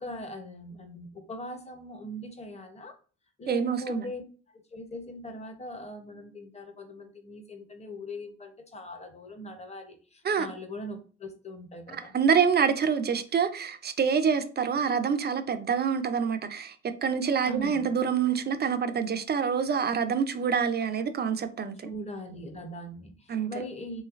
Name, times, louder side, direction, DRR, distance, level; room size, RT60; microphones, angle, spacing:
voice 1, 0.0-2.9 3.4-4.2 4.7-12.1 17.4-17.8 21.8-24.0, equal, 20° left, 0.7 m, -40 dB
voice 2, 3.5-4.0 10.2-10.5 11.9-21.9 23.3-23.5, right 6 dB, 35° right, 0.4 m, -26 dB
3.1 x 3.1 x 2.4 m
cardioid pair, 90°, 30 cm